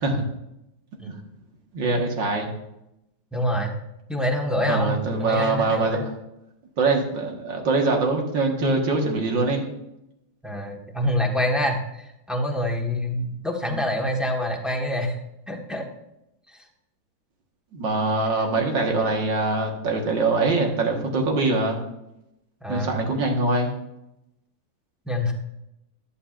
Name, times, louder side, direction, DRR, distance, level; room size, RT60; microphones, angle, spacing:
voice 1, 1.7-2.5 4.7-6.0 6.8-9.7 13.7-13.8 17.7-21.8 22.7-23.7, right 3 dB, 80° right, 2 dB, 2.2 m, -23 dB
voice 2, 3.3-3.8 4.1-4.9 5.2-6.0 10.4-15.2 15.5-15.9 22.6-23.0 25.1-25.3, left 1 dB, ahead, 0 dB, 1.1 m, -26 dB
14.0 x 10.5 x 2.5 m, 0.87 s
omnidirectional pair, 2.0 m